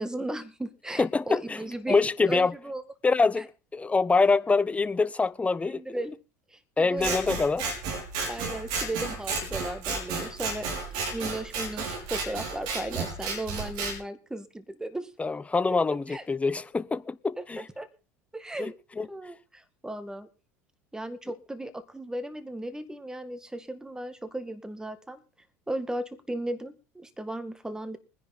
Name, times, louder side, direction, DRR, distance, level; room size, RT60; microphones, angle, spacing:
voice 1, 0.0-2.8 3.4-3.5 5.6-6.1 6.5-7.2 8.3-15.1 15.7-16.2 17.4-17.9 18.3-20.3 20.9-25.2 25.7-28.0, right 1 dB, 10° right, 2.0 m, -36 dB
voice 2, 1.0-1.6 1.9-2.5 3.0-5.8 6.8-7.7 15.2-17.6 18.6-19.1, left 4 dB, 15° left, 0.7 m, -25 dB
Scissors, 7.0-14.0, right 4 dB, 60° right, 5.3 m, -32 dB
21.0 x 10.5 x 3.9 m
hypercardioid pair, 75°, 9 cm